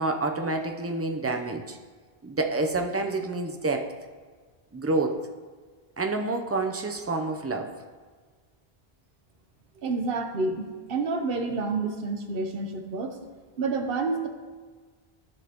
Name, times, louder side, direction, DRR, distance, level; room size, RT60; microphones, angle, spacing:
voice 1, 0.0-1.8 2.2-3.9 4.7-5.2 6.0-7.7, right 2 dB, 20° right, 5 dB, 0.4 m, -28 dB
voice 2, 9.8-13.2 13.6-14.3, right 3 dB, 65° right, 5 dB, 1.0 m, -29 dB
13.5 x 5.2 x 2.9 m, 1.5 s
omnidirectional pair, 1.0 m